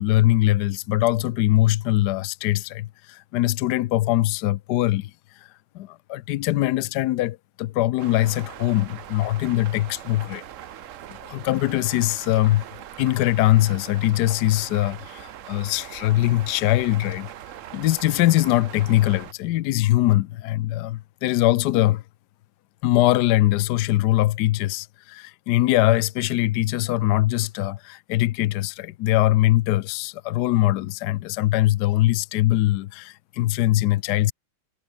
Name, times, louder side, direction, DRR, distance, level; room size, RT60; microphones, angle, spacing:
voice 1, 0.0-5.1 5.7-10.4 11.2-12.6 13.0-17.3 17.7-22.0 22.8-34.3, left 16 dB, 75° left, 0.9 m, -22 dB
sound 1, 8.0-19.3, right 11 dB, 90° right, 0.6 m, -41 dB
omnidirectional pair, 2.3 m